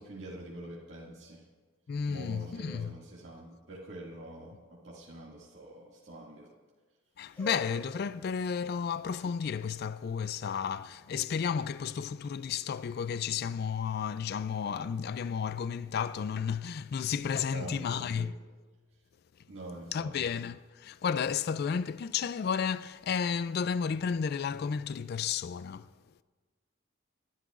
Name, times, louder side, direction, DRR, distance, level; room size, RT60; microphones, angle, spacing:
voice 1, 0.0-1.4 2.1-4.6 4.8-6.5 17.5-18.3 19.5-20.1, right 1 dB, 60° right, 2.1 m, -45 dB
voice 2, 1.9-3.0 7.2-18.3 19.9-25.9, left 7 dB, 50° left, 0.3 m, -32 dB
sound 1, 7.2-13.1, equal, 10° left, 4.9 m, -50 dB
26.0 x 11.5 x 2.5 m
head